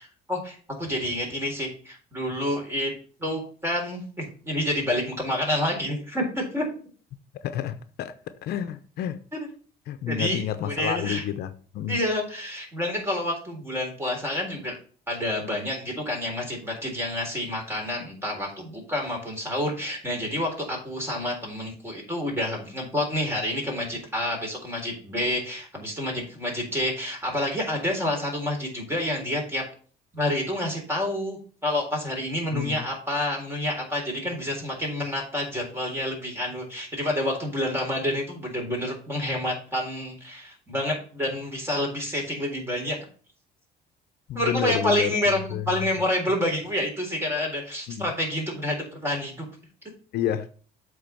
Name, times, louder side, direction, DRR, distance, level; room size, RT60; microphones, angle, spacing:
voice 1, 0.0-2.9 3.2-6.6 10.1-11.2 11.9-14.8 15.1-29.6 30.1-43.0 44.3-49.5, left 1 dB, 15° right, 3.8 m, -28 dB
voice 2, 7.4-8.1 8.4-9.2 9.9-12.0 32.5-32.9 44.3-45.2 45.5-45.9 47.9-48.1 50.1-50.5, left 10 dB, 70° left, 0.7 m, -29 dB
7.9 x 4.0 x 6.8 m
cardioid pair, 110°, 17 cm